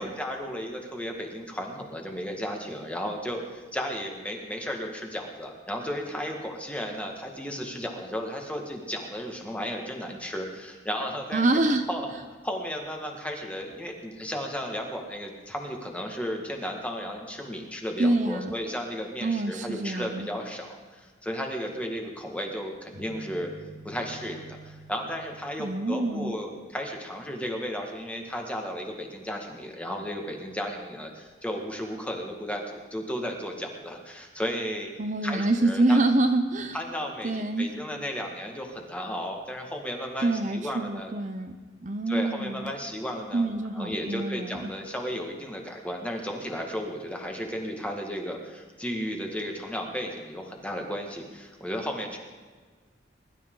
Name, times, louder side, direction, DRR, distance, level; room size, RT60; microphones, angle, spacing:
voice 1, 0.0-11.5 11.9-12.1 12.4-23.5 23.8-34.9 35.2-36.0 36.7-41.1 42.1-52.2, equal, 5° left, 1 dB, 1.8 m, -34 dB
voice 2, 11.3-11.9 18.0-18.6 19.2-20.3 25.6-26.4 35.0-36.8 37.2-37.7 40.2-41.5 41.8-42.7 43.3-44.7, right 2 dB, 40° right, 6 dB, 0.7 m, -26 dB
sound 1, 22.9-27.1, right 2 dB, 90° right, 2.2 m, -48 dB
21.5 x 12.5 x 3.9 m, 1.4 s
head